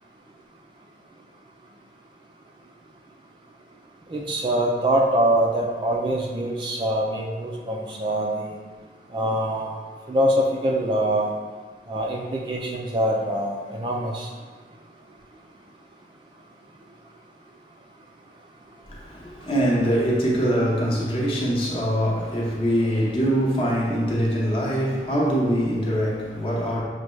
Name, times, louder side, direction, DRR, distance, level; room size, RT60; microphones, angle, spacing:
voice 1, 4.1-8.6 9.1-9.7 10.1-11.3 11.9-14.3, right 1 dB, 25° right, -1 dB, 0.3 m, -24 dB
voice 2, 18.9-26.8, equal, 30° left, -4 dB, 0.8 m, -23 dB
6.3 x 2.2 x 3.1 m, 1.5 s
head